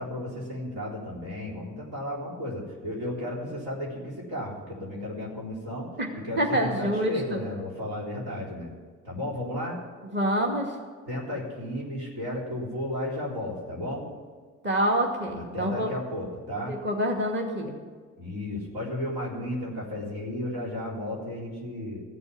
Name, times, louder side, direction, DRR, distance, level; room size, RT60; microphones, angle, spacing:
voice 1, 0.0-5.9 6.2-8.8 9.0-9.8 11.1-14.1 15.4-16.8 18.2-22.0, left 1 dB, 75° right, -5 dB, 4.0 m, -34 dB
voice 2, 6.4-7.4 10.1-10.8 14.6-15.9 16.7-17.8, right 1 dB, 30° right, 1 dB, 2.3 m, -26 dB
15.0 x 6.9 x 9.7 m, 1.5 s
hypercardioid pair, 50°, 38 cm